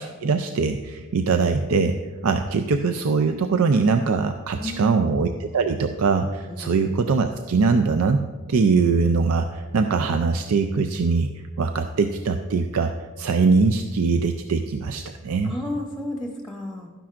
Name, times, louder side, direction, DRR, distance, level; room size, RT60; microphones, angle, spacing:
voice 1, 0.0-2.0 2.2-8.2 8.5-11.3 11.6-15.5, right 4 dB, 70° right, 6 dB, 0.5 m, -22 dB
voice 2, 4.6-5.0 6.5-6.8 15.4-16.9, left 2 dB, ahead, 0 dB, 1.0 m, -32 dB
12.5 x 10.0 x 2.5 m, 1.3 s
head